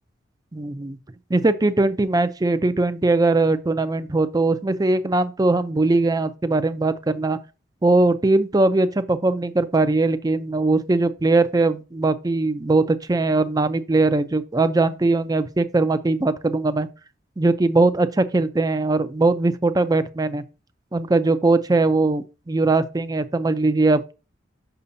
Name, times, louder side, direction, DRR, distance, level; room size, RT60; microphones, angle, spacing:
voice 1, 0.5-1.0 1.3-7.4 7.8-16.9 17.4-20.4 20.9-24.1, right 2 dB, 20° right, 0.5 m, -20 dB
6.8 x 5.9 x 2.7 m
head